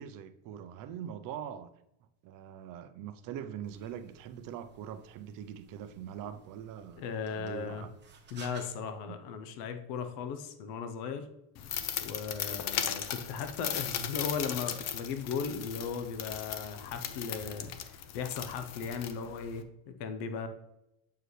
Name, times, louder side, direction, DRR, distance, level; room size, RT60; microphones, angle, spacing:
voice 1, 0.0-1.7 2.2-7.0 7.3-7.9 9.1-9.2 12.5-12.6, right 9 dB, 50° right, 0.7 m, -42 dB
sound 1, 3.6-8.7, right 6 dB, 25° right, 1.0 m, -56 dB
voice 2, 7.0-7.9 8.3-11.3 12.0-20.5, left 6 dB, 65° left, 0.9 m, -37 dB
sound 2, 11.5-19.6, left 9 dB, 40° left, 0.5 m, -37 dB
7.8 x 4.8 x 3.2 m
cardioid pair, 140°, 43 cm